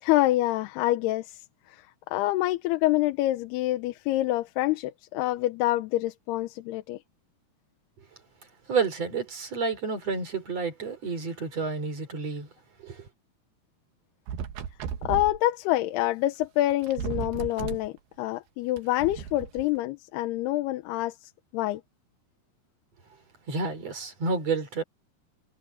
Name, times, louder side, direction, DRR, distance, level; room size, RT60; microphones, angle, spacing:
voice 1, 0.0-7.0 15.0-21.8, left 16 dB, 90° left, 2.9 m, -27 dB
voice 2, 8.7-12.5 12.8-13.1 23.5-24.8, right 4 dB, 40° right, 5.1 m, -30 dB
sound 1, 14.3-15.4 16.4-16.5 16.7-17.9 18.8-19.6, right 8 dB, 75° right, 3.5 m, -35 dB
omnidirectional pair, 4.5 m